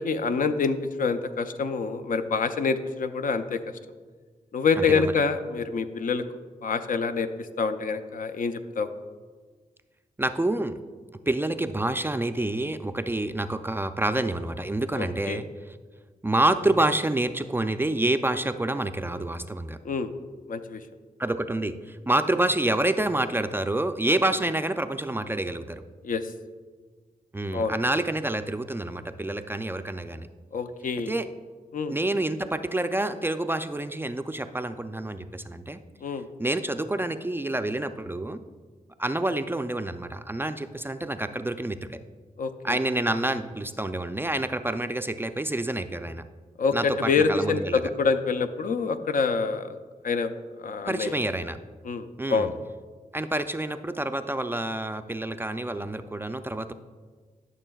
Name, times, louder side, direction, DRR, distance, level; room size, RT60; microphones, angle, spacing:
voice 1, 0.0-3.8 4.5-6.2 6.6-8.9 14.9-15.4 19.8-20.1 20.5-20.9 26.0-26.3 27.5-27.8 30.5-31.2 31.7-32.0 36.0-36.3 42.4-42.8 46.6-49.8 50.0-51.2 51.8-52.5, left 5 dB, 60° left, 9 dB, 0.5 m, -26 dB
voice 2, 4.8-5.1 10.2-10.7 11.3-15.5 16.2-19.8 21.2-25.8 27.3-30.3 31.1-31.3 31.9-35.8 36.4-38.4 39.0-42.0 42.6-46.2 46.7-47.8 50.9-51.6 52.2-52.5 53.1-56.7, right 1 dB, 15° right, 9 dB, 0.4 m, -28 dB
12.0 x 6.4 x 2.3 m, 1.5 s
cardioid pair, 60°, 15 cm